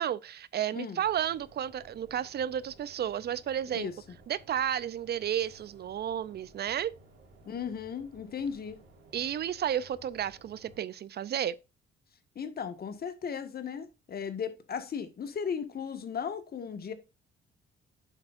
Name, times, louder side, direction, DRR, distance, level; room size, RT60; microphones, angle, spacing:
voice 1, 0.0-3.9 4.3-6.9 9.1-11.6, right 10 dB, 55° right, 0.5 m, -32 dB
sound 1, 1.0-10.8, right 2 dB, 85° right, 4.3 m, -57 dB
voice 2, 7.4-8.8 12.3-16.9, left 7 dB, 50° left, 1.6 m, -36 dB
9.1 x 7.3 x 2.5 m
cardioid pair, 90°, 20 cm